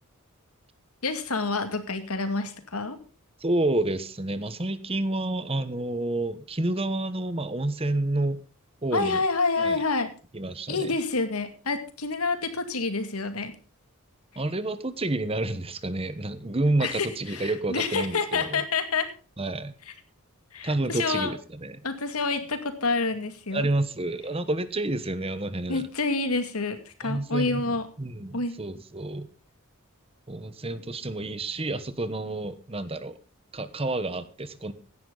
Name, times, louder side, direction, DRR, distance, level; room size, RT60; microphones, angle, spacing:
voice 1, 1.0-3.0 8.9-10.1 10.7-13.5 16.8-19.1 20.5-21.3 21.8-23.7 25.7-27.9 28.3-28.6, left 3 dB, 85° left, 9 dB, 2.3 m, -28 dB
voice 2, 3.4-8.4 8.8-9.2 9.6-9.8 10.3-10.9 14.4-18.6 19.4-19.7 20.6-21.8 23.5-25.8 27.0-29.3 30.3-33.2 33.5-34.7, right 2 dB, 25° right, 13 dB, 1.1 m, -29 dB
16.5 x 11.0 x 3.9 m, 0.35 s
head